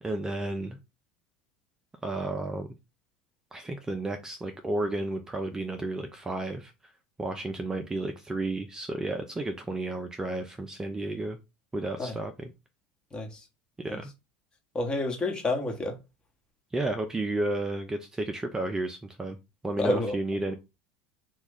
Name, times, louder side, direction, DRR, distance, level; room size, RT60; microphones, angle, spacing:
voice 1, 0.0-0.8 2.0-2.7 3.5-6.7 7.2-11.4 11.7-12.5 13.8-14.1 16.7-19.4 19.6-20.6, right 2 dB, 15° right, 0.4 m, -32 dB
voice 2, 14.7-15.9 19.8-20.2, left 2 dB, 25° left, 1.1 m, -29 dB
2.9 x 2.4 x 3.5 m
supercardioid pair, 95°, 4 cm